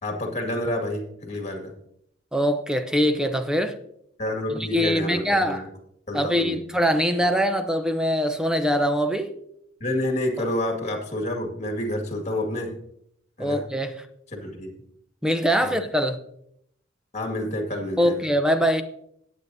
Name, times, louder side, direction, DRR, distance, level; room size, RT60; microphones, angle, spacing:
voice 1, 0.0-1.7 4.2-5.7 6.1-6.6 9.8-12.7 13.4-13.6 14.3-14.7 15.6-15.7 17.1-18.2, left 1 dB, 35° left, 2.0 m, -29 dB
voice 2, 2.3-3.8 4.7-5.6 6.1-9.3 13.4-13.9 15.2-16.2 18.0-18.8, equal, 5° right, 0.7 m, -23 dB
17.5 x 8.3 x 2.7 m
head